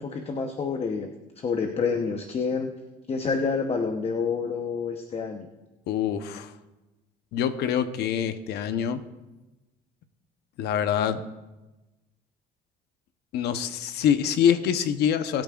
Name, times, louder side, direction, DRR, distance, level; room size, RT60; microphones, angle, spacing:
voice 1, 0.0-2.7 3.1-5.5, left 5 dB, 35° left, 5 dB, 1.0 m, -28 dB
voice 2, 5.9-6.5 7.3-9.0 10.6-11.3 13.3-15.4, left 8 dB, 80° left, 10 dB, 0.9 m, -25 dB
22.5 x 8.9 x 2.5 m, 1.1 s
cardioid pair, 110°, 17 cm